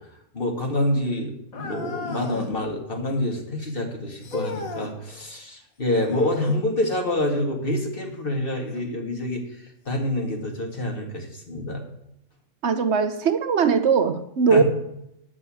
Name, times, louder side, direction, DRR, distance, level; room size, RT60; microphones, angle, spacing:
voice 1, 0.3-9.4 9.9-11.8 14.5-14.6, left 1 dB, 40° left, 2.3 m, -27 dB
sound 1, 1.5-2.6 4.2-4.9 6.0-6.7 8.7-8.8 9.7-9.8 10.7-10.8, left 4 dB, 90° left, 2.0 m, -35 dB
voice 2, 12.6-14.6, right 5 dB, 55° right, 1.2 m, -20 dB
11.0 x 6.1 x 8.6 m
omnidirectional pair, 1.4 m